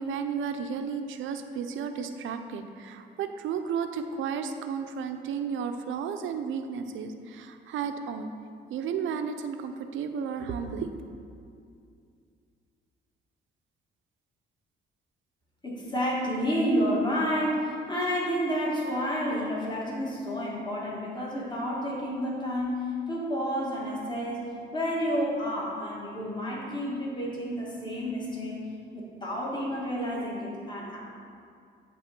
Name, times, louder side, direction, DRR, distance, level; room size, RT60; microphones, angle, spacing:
voice 1, 0.0-8.3 8.7-11.0, right 6 dB, 75° right, 7 dB, 0.5 m, -33 dB
voice 2, 15.6-22.8 23.1-24.4 24.7-28.6 28.9-31.0, equal, 20° left, -5 dB, 1.8 m, -30 dB
8.4 x 3.6 x 5.8 m, 2.4 s
cardioid pair, 90°, 20 cm